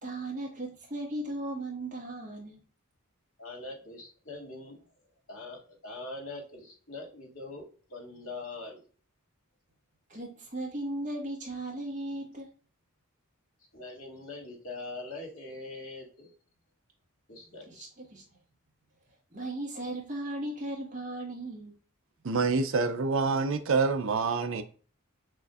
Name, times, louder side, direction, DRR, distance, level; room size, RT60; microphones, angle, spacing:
voice 1, 0.0-2.6 10.1-12.5 17.7-18.2 19.3-21.7, right 1 dB, 35° right, 1.5 m, -37 dB
voice 2, 3.4-4.8 5.3-8.8 13.7-16.3 17.3-17.9, left 2 dB, 75° left, 2.0 m, -42 dB
voice 3, 22.2-24.6, right 4 dB, 60° right, 0.5 m, -27 dB
6.2 x 2.6 x 2.3 m
head